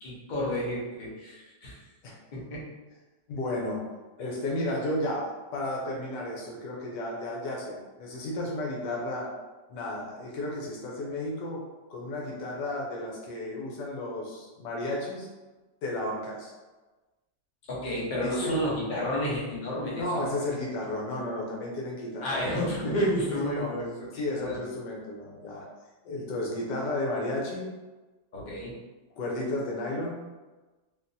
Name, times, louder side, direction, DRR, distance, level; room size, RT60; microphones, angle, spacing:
voice 1, 0.0-1.8 2.3-2.7 17.7-20.3 22.2-24.6 28.3-28.7, equal, 40° left, -6 dB, 0.7 m, -31 dB
voice 2, 3.3-3.8 4.2-9.3 9.7-11.6 11.9-15.3 15.8-16.5 18.2-18.6 20.0-22.6 23.6-23.7 24.1-25.7 26.0-27.7 29.1-30.3, left 1 dB, 85° left, -2 dB, 1.4 m, -33 dB
3.7 x 2.3 x 2.6 m, 1.2 s
omnidirectional pair, 1.9 m